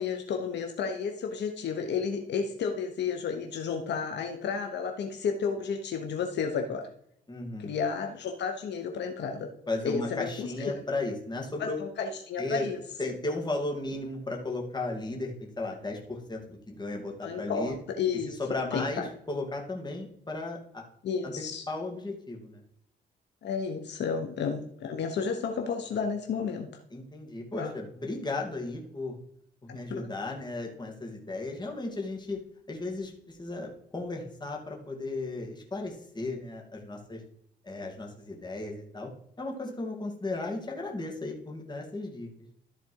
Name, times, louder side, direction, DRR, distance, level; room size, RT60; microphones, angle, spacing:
voice 1, 0.0-6.9 7.6-9.5 9.8-10.7 11.6-12.8 17.2-18.3 18.7-18.8 21.0-21.6 23.4-26.7 27.6-27.7 29.7-30.0, left 6 dB, 75° left, 4 dB, 1.1 m, -32 dB
voice 2, 7.3-7.7 9.7-11.8 12.4-12.7 13.0-17.8 18.4-20.8 21.2-22.6 26.9-29.1 29.6-32.4 32.7-37.2 37.6-39.1 39.4-42.3, left 2 dB, 25° left, 0 dB, 2.6 m, -35 dB
13.0 x 4.3 x 4.7 m, 0.70 s
cardioid pair, 95°, 18 cm